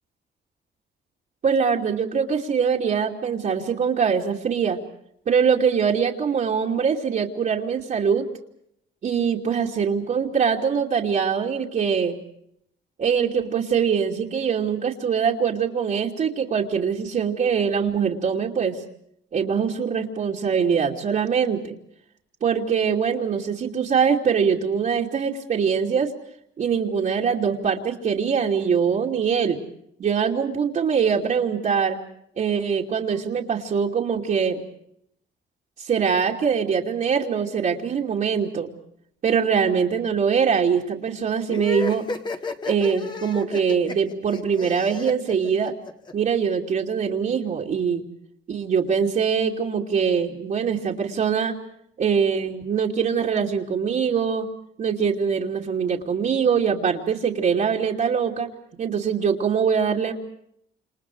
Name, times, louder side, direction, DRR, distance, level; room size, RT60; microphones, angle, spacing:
voice 1, 1.4-4.8 5.3-8.3 9.0-12.2 13.0-18.8 19.3-21.8 22.4-26.1 26.6-29.6 30.0-32.0 32.4-34.6 35.8-38.7 39.2-42.1 42.7-45.7 46.1-48.0 48.5-51.6 52.0-54.5 54.8-58.5 58.8-60.1, right 6 dB, 50° right, -3 dB, 2.8 m, -23 dB
sound 1, 41.5-46.1, left 3 dB, 25° left, 2.0 m, -32 dB
29.5 x 28.0 x 4.8 m, 0.73 s
cardioid pair, 135°, 18 cm